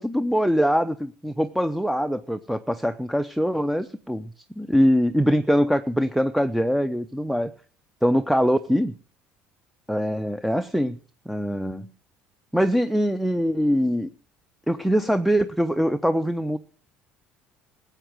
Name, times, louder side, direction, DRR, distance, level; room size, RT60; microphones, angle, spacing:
voice 1, 0.0-4.3 4.6-7.5 8.0-8.9 9.9-11.0 11.3-11.9 12.5-14.1 14.7-16.6, equal, ahead, 8 dB, 0.7 m, -23 dB
14.5 x 8.1 x 7.7 m, 0.42 s
cardioid pair, 115°, 4 cm